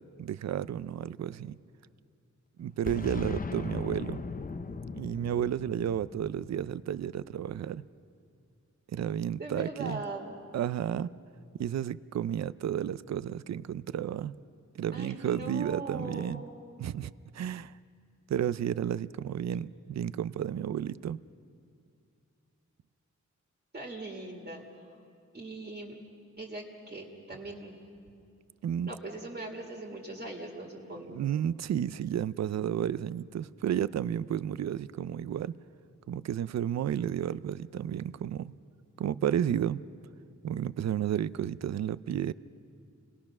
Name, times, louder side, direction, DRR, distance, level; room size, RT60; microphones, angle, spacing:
voice 1, 0.0-1.6 2.6-4.2 4.9-7.8 8.9-10.0 10.5-11.1 11.6-14.3 14.8-16.4 16.8-17.7 18.3-21.2 28.6-28.9 31.1-35.6 36.1-38.5 39.0-39.8 40.4-42.3, right 10 dB, 65° right, 18 dB, 0.5 m, -32 dB
Boom, 2.9-7.5, left 4 dB, 30° left, 0.7 m, -39 dB
voice 2, 3.8-4.6 9.4-10.4 14.9-16.5 23.7-24.8 25.3-26.0 26.4-27.8 28.8-31.2, right 2 dB, 35° right, -2 dB, 2.1 m, -41 dB
28.5 x 20.0 x 6.0 m, 2.4 s
wide cardioid pair, 145°, 29 cm